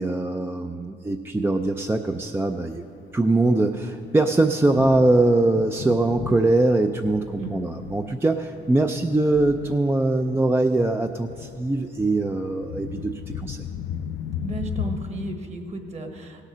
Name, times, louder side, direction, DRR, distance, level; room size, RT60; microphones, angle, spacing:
voice 1, 0.0-2.9 3.1-13.6, right 2 dB, 10° right, 5 dB, 0.4 m, -22 dB
Thunder, 1.7-15.3, left 9 dB, 75° left, 0.4 m, -37 dB
voice 2, 14.4-16.4, right 2 dB, 35° right, 5 dB, 1.4 m, -33 dB
16.5 x 6.6 x 6.1 m, 2.6 s
cardioid pair, 90°, 20 cm